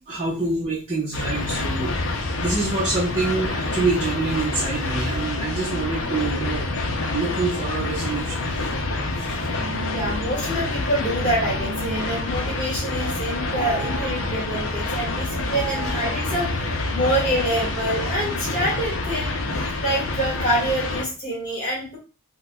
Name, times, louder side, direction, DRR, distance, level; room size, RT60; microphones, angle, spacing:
voice 1, 0.1-8.5 9.1-9.3, right 3 dB, 35° right, -6 dB, 0.7 m, -26 dB
sound 1, 1.1-21.0, left 2 dB, 60° left, 0.6 m, -27 dB
sound 2, 2.7-18.3, right 3 dB, 60° right, 0.4 m, -38 dB
voice 2, 9.9-19.5 19.8-22.0, right 1 dB, 20° left, -5 dB, 1.6 m, -26 dB
4.6 x 2.2 x 2.3 m, 0.35 s
head